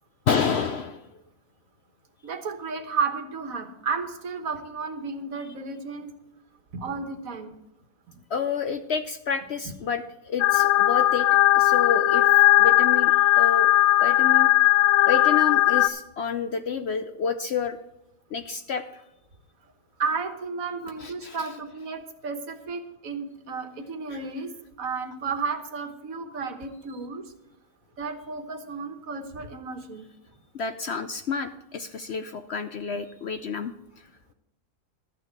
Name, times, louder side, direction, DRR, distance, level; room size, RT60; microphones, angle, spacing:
voice 1, 0.3-1.1 8.3-11.3 11.5-13.7 14.0-14.5 15.0-17.8 18.3-19.0 21.0-21.5 24.1-24.2 30.5-33.7, left 6 dB, 60° left, 9 dB, 0.7 m, -29 dB
voice 2, 2.2-6.1 6.7-7.6 20.0-27.3 28.0-30.1, right 5 dB, 70° right, 7 dB, 1.6 m, -33 dB
sound 1, 10.4-15.9, left 16 dB, 85° left, 1.1 m, -18 dB
12.5 x 9.2 x 4.5 m, 0.89 s
omnidirectional pair, 1.5 m